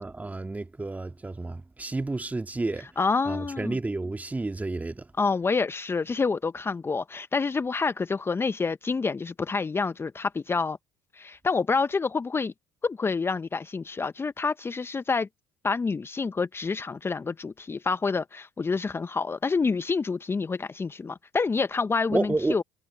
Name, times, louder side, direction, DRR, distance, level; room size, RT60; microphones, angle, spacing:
voice 1, 0.0-2.9 3.3-5.1 22.1-22.6, right 2 dB, 15° right, 2.0 m, -30 dB
voice 2, 3.0-3.8 5.2-10.8 11.1-12.5 12.8-15.3 15.6-22.6, left 4 dB, 25° left, 1.0 m, -28 dB
hypercardioid pair, 60°, 9 cm